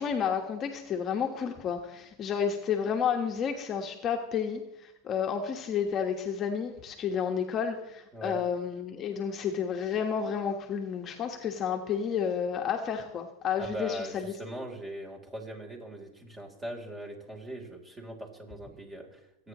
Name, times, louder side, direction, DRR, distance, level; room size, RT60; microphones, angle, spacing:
voice 1, 0.0-14.3, left 7 dB, 30° left, 3 dB, 1.4 m, -31 dB
voice 2, 13.6-19.5, equal, 15° right, 1 dB, 3.6 m, -40 dB
25.5 x 9.6 x 3.1 m, 0.92 s
supercardioid pair, 130°, 0 cm